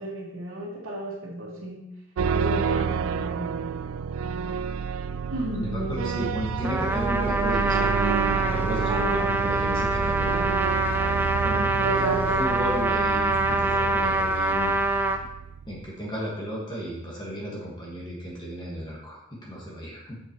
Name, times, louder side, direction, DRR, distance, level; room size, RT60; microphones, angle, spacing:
voice 1, 0.0-1.8 2.3-3.6 5.1-6.3 8.9-9.4 11.8-12.4, right 1 dB, 70° right, -9 dB, 1.8 m, -32 dB
sound 1, 2.2-15.9, right 6 dB, 85° right, 0.4 m, -30 dB
voice 2, 5.5-8.0 8.2-10.6 11.4-14.8 15.6-20.2, equal, 20° left, -4 dB, 1.6 m, -34 dB
Trumpet, 6.6-15.2, right 2 dB, 10° right, 0.4 m, -25 dB
8.3 x 7.0 x 3.0 m, 0.84 s
head